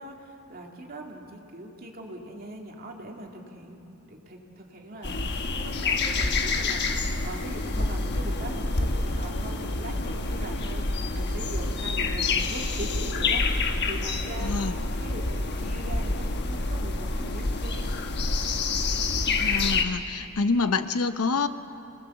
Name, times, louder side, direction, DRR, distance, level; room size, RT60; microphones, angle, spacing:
voice 1, 0.0-18.0, right 1 dB, 40° right, 1 dB, 2.4 m, -41 dB
sound 1, 5.0-19.8, left 3 dB, 50° left, 1.3 m, -27 dB
voice 2, 14.4-14.8 19.4-21.5, left 4 dB, 80° left, 11 dB, 0.9 m, -27 dB
27.0 x 18.5 x 7.1 m, 2.8 s
head